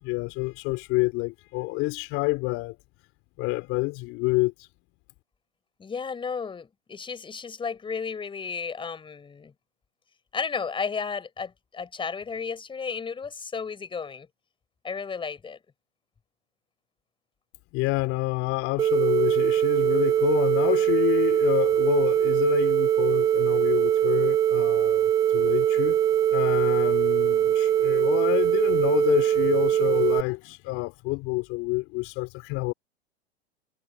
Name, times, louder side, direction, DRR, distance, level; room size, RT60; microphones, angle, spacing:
voice 1, 0.0-2.7 3.4-4.7 17.7-26.0 26.3-32.7, left 24 dB, 40° left, 3.2 m, -28 dB
voice 2, 5.8-9.5 10.3-14.3 14.8-15.6, left 5 dB, 15° left, 5.7 m, -33 dB
sound 1, 18.8-30.2, right 10 dB, 10° right, 0.3 m, -22 dB
hypercardioid pair, 105°, 33 cm